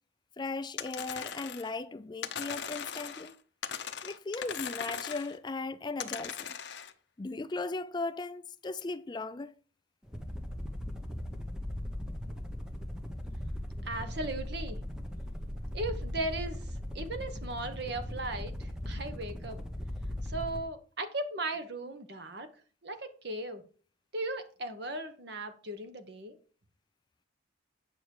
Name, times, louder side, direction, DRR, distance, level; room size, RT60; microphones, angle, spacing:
voice 1, 0.4-3.4 4.0-6.6 7.2-9.5, left 3 dB, 20° left, 0.4 m, -37 dB
sound 1, 0.8-1.7 2.2-3.3 3.6-5.4 6.0-6.9, left 7 dB, 65° left, 0.8 m, -39 dB
sound 2, 10.0-20.7, left 1 dB, 5° right, 1.1 m, -38 dB
voice 2, 13.8-14.8 15.7-19.6 20.2-22.5 22.8-23.6 24.1-26.4, right 2 dB, 60° right, 1.3 m, -37 dB
9.3 x 6.1 x 4.8 m
head